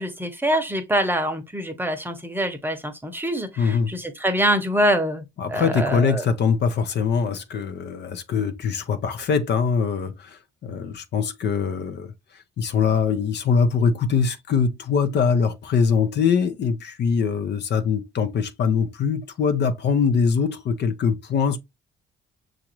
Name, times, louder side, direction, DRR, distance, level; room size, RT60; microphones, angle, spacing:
voice 1, 0.0-6.3, equal, 10° right, 0.8 m, -25 dB
voice 2, 3.6-4.0 5.4-12.1 12.6-21.6, left 6 dB, 60° left, 0.6 m, -23 dB
5.9 x 2.5 x 2.9 m
cardioid pair, 90°, 20 cm